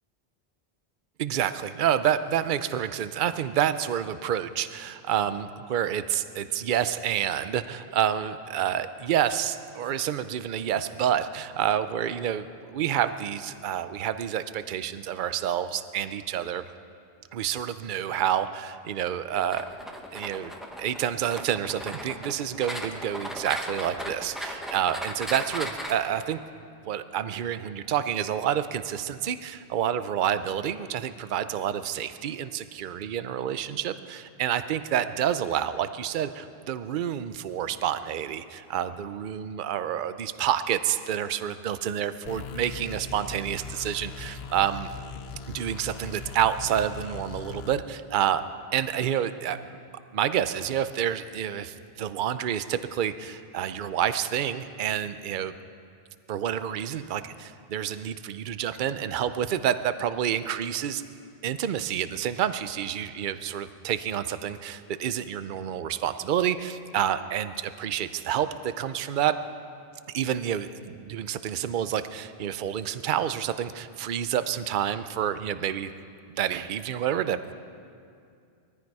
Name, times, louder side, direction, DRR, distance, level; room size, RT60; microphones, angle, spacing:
voice 1, 1.2-12.5 12.7-16.7 17.3-19.7 20.1-20.5 20.8-26.4 26.8-44.9 45.5-48.4 48.7-49.6 50.1-55.5 56.3-61.0 61.4-69.4 70.1-75.9 76.3-77.5, right 10 dB, 55° right, 12 dB, 0.7 m, -28 dB
sound 1, 19.5-25.9, equal, ahead, 1.1 m, -36 dB
sound 2, 42.3-47.8, left 5 dB, 70° left, 0.9 m, -40 dB
20.5 x 14.5 x 4.8 m, 2.3 s
omnidirectional pair, 1.1 m